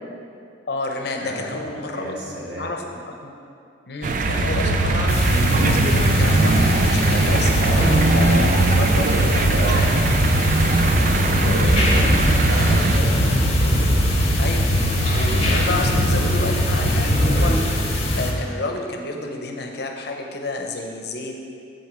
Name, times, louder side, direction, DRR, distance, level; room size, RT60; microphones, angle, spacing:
voice 1, 0.7-3.3 3.9-7.5 8.1-10.1 11.9-12.2 14.4-14.7 15.1-17.6 18.1-21.4, left 2 dB, 60° left, 2 dB, 0.8 m, -30 dB
voice 2, 1.2-2.7 7.6-10.1 11.1-13.2, right 1 dB, 60° right, -4 dB, 1.6 m, -30 dB
sound 1, 4.0-13.0, right 3 dB, 45° right, 0.4 m, -21 dB
sound 2, 4.2-17.5, right 1 dB, 80° right, 1.0 m, -25 dB
sound 3, 5.1-18.3, left 1 dB, 35° left, 1.0 m, -21 dB
7.8 x 4.4 x 6.8 m, 2.5 s
head